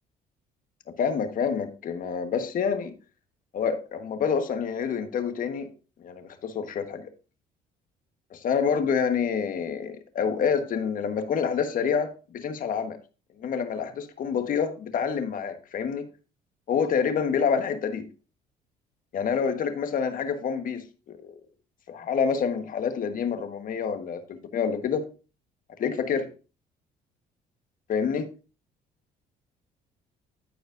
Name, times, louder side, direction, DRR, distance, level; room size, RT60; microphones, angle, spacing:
voice 1, 1.0-2.9 3.5-5.7 6.0-7.1 8.3-13.0 13.4-16.1 16.7-18.1 19.1-21.3 21.9-25.0 25.8-26.3 27.9-28.2, left 6 dB, 55° left, 1.3 m, -27 dB
14.0 x 5.0 x 2.6 m
cardioid pair, 95°, 17 cm